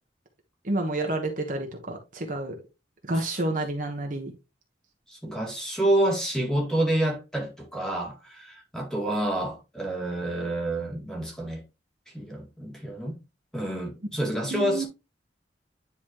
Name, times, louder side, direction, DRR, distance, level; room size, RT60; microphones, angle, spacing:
voice 1, 0.6-2.5 3.1-4.3 14.5-14.9, right 2 dB, 45° right, 1.2 m, -29 dB
voice 2, 5.1-11.6 12.1-13.2 13.5-14.9, right 1 dB, 5° left, 2.0 m, -28 dB
9.9 x 4.1 x 2.9 m
head